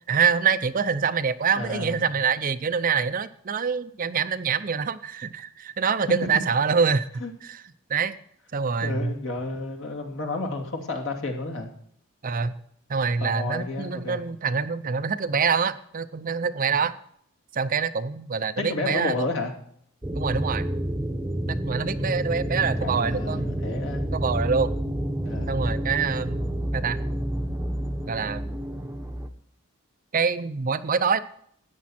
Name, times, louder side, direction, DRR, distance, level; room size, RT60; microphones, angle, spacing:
voice 1, 0.1-7.1 7.4-7.6 7.9-8.2 8.5-9.1 12.2-12.5 12.9-16.9 17.5-19.3 20.1-20.6 21.5-23.6 24.1-24.7 25.5-26.5 26.7-27.0 28.1-28.5 30.1-31.2, right 5 dB, 40° right, 12 dB, 0.5 m, -25 dB
voice 2, 1.6-2.1 7.2-7.3 8.8-11.7 13.2-14.3 18.6-19.5 22.8-24.1 25.2-25.6, left 2 dB, 60° left, 2 dB, 2.6 m, -31 dB
sound 1, 20.0-29.3, right 1 dB, 10° right, 0.9 m, -29 dB
13.5 x 9.6 x 4.3 m, 0.65 s
head